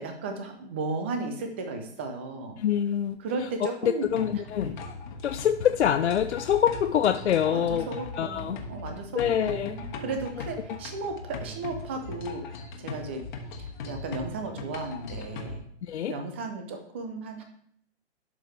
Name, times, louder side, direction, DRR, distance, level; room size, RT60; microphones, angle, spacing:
voice 1, 0.0-2.6 3.2-4.1 4.6-4.8 7.5-13.2 13.5-15.6 16.1-17.4, right 3 dB, 10° right, 5 dB, 0.4 m, -35 dB
voice 2, 2.6-3.2 3.8-4.8 5.2-7.9 8.2-8.6 9.1-9.8 10.7-10.8 15.8-16.1, left 9 dB, 70° left, 8 dB, 0.5 m, -25 dB
sound 1, 4.0-15.6, left 3 dB, 45° left, 1.3 m, -39 dB
12.0 x 4.8 x 3.2 m, 0.66 s
hypercardioid pair, 135°, 35 cm